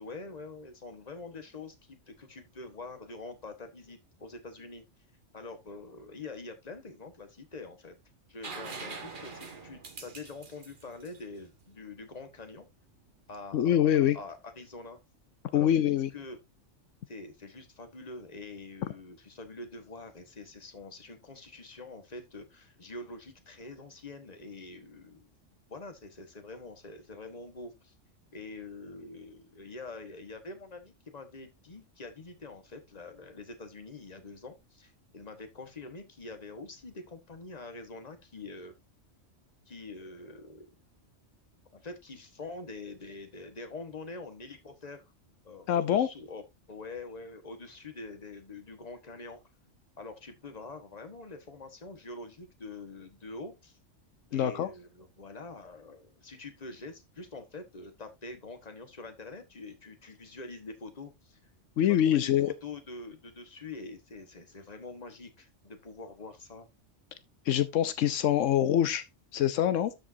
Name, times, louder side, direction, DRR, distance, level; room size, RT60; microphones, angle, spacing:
voice 1, 0.0-4.8 5.3-7.9 8.3-12.7 13.3-15.0 15.5-16.4 17.1-25.3 25.7-27.9 28.3-38.8 39.7-40.7 41.7-45.0 45.4-46.4 46.7-49.4 50.0-53.8 54.3-61.4 61.8-66.7, left 3 dB, 35° left, 1.5 m, -45 dB
sound 1, 8.4-12.1 14.0-14.1, right 4 dB, 45° right, 1.4 m, -44 dB
voice 2, 13.5-14.2 15.5-16.1 45.7-46.1 54.3-54.7 61.8-62.5 67.5-69.0 69.3-69.9, left 11 dB, 85° left, 1.0 m, -25 dB
12.5 x 5.3 x 2.7 m
omnidirectional pair, 1.3 m